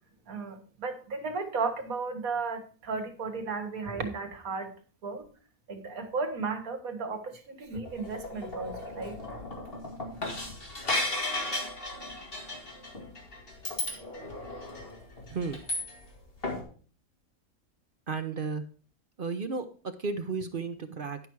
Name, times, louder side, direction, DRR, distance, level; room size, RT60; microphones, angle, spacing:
voice 1, 0.3-4.7 5.0-5.2 5.7-9.2, right 4 dB, 75° right, 5 dB, 2.0 m, -34 dB
sound 1, 7.8-16.2 16.4-16.6, left 2 dB, 40° left, 2.3 m, -35 dB
voice 2, 15.3-15.6 18.1-18.6 19.2-21.2, right 4 dB, 45° right, 8 dB, 0.8 m, -33 dB
11.0 x 5.9 x 4.6 m, 0.40 s
omnidirectional pair, 1.5 m